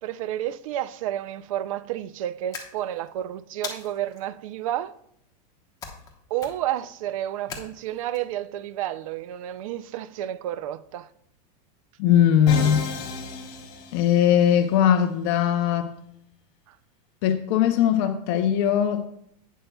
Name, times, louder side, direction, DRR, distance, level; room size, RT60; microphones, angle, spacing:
voice 1, 0.0-5.0 6.3-11.1 16.7-16.8, right 12 dB, 55° right, 0.4 m, -31 dB
sound 1, 2.5-3.1 3.6-4.2 5.8-6.1 6.4-6.8 7.5-8.2, left 6 dB, 15° left, 1.0 m, -39 dB
voice 2, 12.0-12.9 13.9-15.9 17.2-19.0, left 9 dB, 40° left, 0.6 m, -20 dB
Musical instrument, 12.5-14.6, left 4 dB, 55° left, 2.6 m, -33 dB
11.0 x 9.1 x 2.2 m
supercardioid pair, 170°, 21 cm